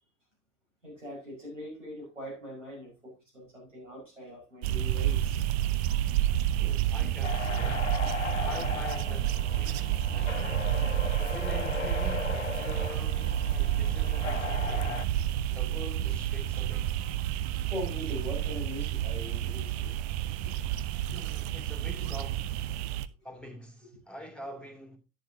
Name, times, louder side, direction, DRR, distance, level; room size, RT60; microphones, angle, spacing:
voice 1, 0.8-5.4 17.7-20.0 20.4-20.6 21.1-21.2 21.8-22.1, equal, 90° right, 5.5 m, -41 dB
sound 1, 4.6-23.1, right 12 dB, 60° right, 0.7 m, -30 dB
voice 2, 6.6-8.0 8.4-10.7 11.2-15.1 15.5-16.9 21.1-22.5 23.2-25.0, equal, 5° left, 2.9 m, -45 dB
sound 2, 7.2-15.0, left 7 dB, 85° left, 0.7 m, -37 dB
10.5 x 10.0 x 2.8 m
figure-of-eight pair, 60°, 36 cm